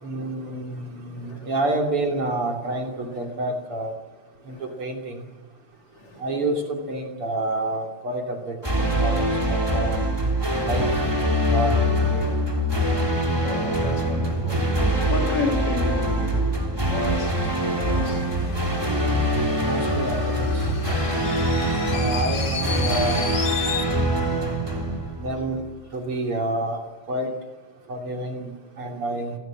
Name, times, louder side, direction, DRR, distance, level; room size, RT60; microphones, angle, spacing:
voice 1, 0.0-3.9 4.5-5.3 6.2-10.0 10.6-10.9 11.5-12.3 19.6-20.7 21.9-23.3 25.2-25.6 25.9-26.8 27.1-27.4 27.9-29.4, right 1 dB, 45° right, 3.7 m, -29 dB
voice 2, 1.2-1.5 4.5-4.6 5.9-6.2 9.5-9.7 12.0-12.4 13.4-18.3 18.9-19.2 24.0-24.3 24.8-25.3, left 4 dB, 50° left, 3.0 m, -34 dB
sound 1, 8.6-25.7, equal, 10° right, 3.1 m, -23 dB
sound 2, 17.0-23.9, left 5 dB, 35° left, 2.7 m, -34 dB
27.5 x 18.5 x 7.5 m
omnidirectional pair, 3.4 m